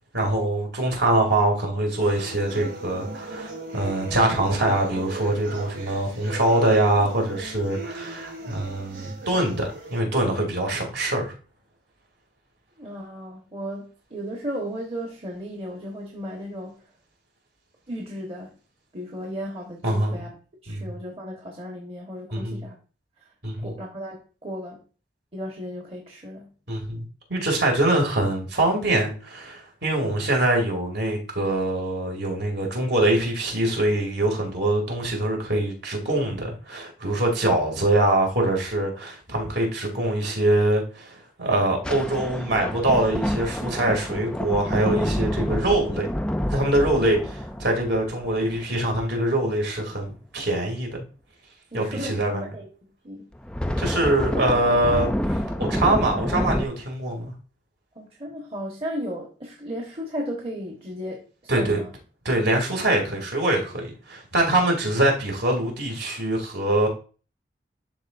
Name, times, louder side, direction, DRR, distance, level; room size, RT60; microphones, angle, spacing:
voice 1, 0.1-11.3 19.8-20.2 20.7-20.8 22.3-22.6 23.4-23.7 26.7-27.0 27.3-46.1 46.5-51.0 51.7-52.4 53.8-55.1 55.6-57.3 61.5-61.8 62.2-66.9, right 1 dB, 65° right, 2.5 m, -24 dB
sound 1, 2.0-10.0, right 2 dB, 90° right, 2.4 m, -38 dB
voice 2, 12.8-16.8 17.9-18.6 18.9-20.3 20.6-22.8 23.2-23.3 23.6-24.8 25.3-26.5 51.7-52.7 53.0-53.3 57.9-61.9, equal, 30° right, 1.2 m, -35 dB
sound 2, 41.8-49.5 53.3-56.6, equal, 5° left, 0.3 m, -28 dB
12.0 x 4.2 x 2.5 m
head